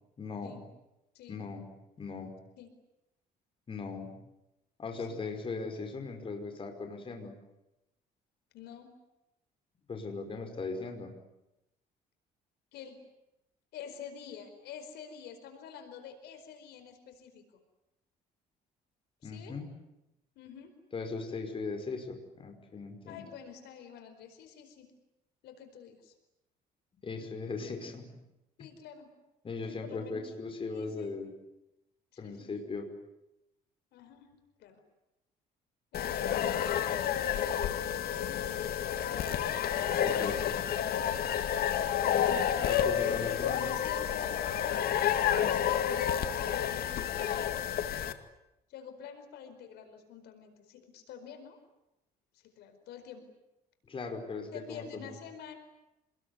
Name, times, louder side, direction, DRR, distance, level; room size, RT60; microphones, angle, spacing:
voice 1, 0.2-0.6 1.3-1.7 2.0-2.3 3.7-4.1 4.8-7.3 9.9-11.1 19.2-19.7 20.9-23.2 27.0-28.1 29.4-31.3 32.2-32.9 40.0-40.6 42.6-43.7 53.9-55.1, left 4 dB, 30° left, 4 dB, 5.4 m, -38 dB
voice 2, 1.1-1.4 2.6-2.7 5.0-5.2 8.5-8.9 12.7-13.0 13.7-17.4 19.2-19.6 20.3-20.7 23.1-24.9 25.4-26.1 28.6-29.1 29.7-30.2 30.7-31.1 32.1-32.6 33.9-34.3 34.6-34.8 35.9-39.0 43.0-48.0 48.7-51.6 52.3-53.2 54.5-55.6, left 7 dB, 80° left, 7 dB, 4.7 m, -48 dB
sound 1, 35.9-48.1, left 9 dB, 65° left, 2.1 m, -30 dB
27.5 x 21.0 x 9.8 m, 0.92 s
cardioid pair, 110°, 17 cm